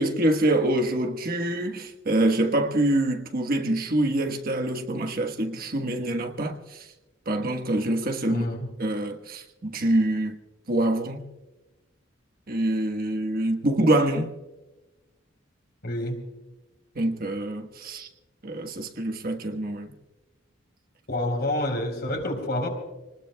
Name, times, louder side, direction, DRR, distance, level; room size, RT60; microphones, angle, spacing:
voice 1, 0.0-6.8 7.3-8.5 8.8-10.3 10.7-11.3 12.5-14.3 16.9-18.1 18.4-19.9, right 1 dB, 50° right, 1.4 m, -25 dB
voice 2, 8.3-8.7 15.8-16.3 21.1-22.7, left 1 dB, 55° left, 3.9 m, -28 dB
27.0 x 19.5 x 2.3 m
head